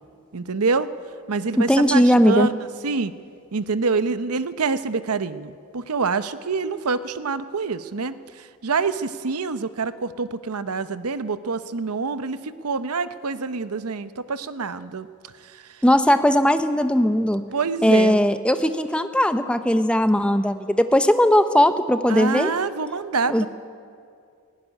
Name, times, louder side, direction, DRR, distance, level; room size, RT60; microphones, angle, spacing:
voice 1, 0.3-0.9 1.3-2.6 2.8-3.1 3.5-15.1 15.4-15.8 17.5-18.2 22.1-23.5, right 4 dB, 90° right, 13 dB, 0.8 m, -26 dB
voice 2, 1.6-2.5 15.8-17.4 17.8-22.5 23.3-23.5, equal, 5° left, 10 dB, 0.7 m, -18 dB
17.5 x 17.5 x 9.9 m, 2.3 s
head